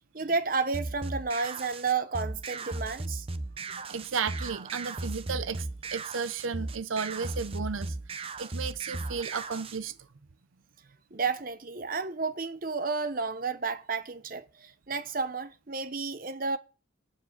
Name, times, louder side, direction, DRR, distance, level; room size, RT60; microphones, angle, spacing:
voice 1, 0.1-3.3 3.8-3.9 11.1-16.6, right 4 dB, 45° right, 0.9 m, -31 dB
sound 1, 0.7-9.8, right 2 dB, 30° right, 0.6 m, -37 dB
voice 2, 3.6-10.0, right 5 dB, 90° right, 0.7 m, -34 dB
8.8 x 7.3 x 8.1 m
head